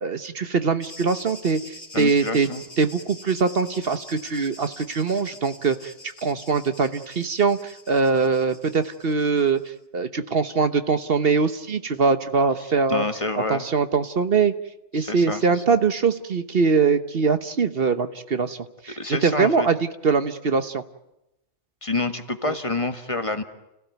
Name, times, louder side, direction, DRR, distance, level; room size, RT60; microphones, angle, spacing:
voice 1, 0.0-2.5 2.8-5.9 6.2-9.6 9.9-13.0 13.5-14.5 14.9-18.6 18.8-19.8 20.0-20.8 22.5-22.6, right 5 dB, 60° right, 10 dB, 1.2 m, -22 dB
sound 1, 0.8-9.7, left 1 dB, 60° left, 3.8 m, -45 dB
voice 2, 1.9-2.6 12.9-13.7 14.9-15.8 19.0-19.7 21.8-23.4, left 2 dB, 30° left, 7 dB, 1.6 m, -28 dB
29.5 x 16.5 x 9.2 m, 0.90 s
omnidirectional pair, 1.2 m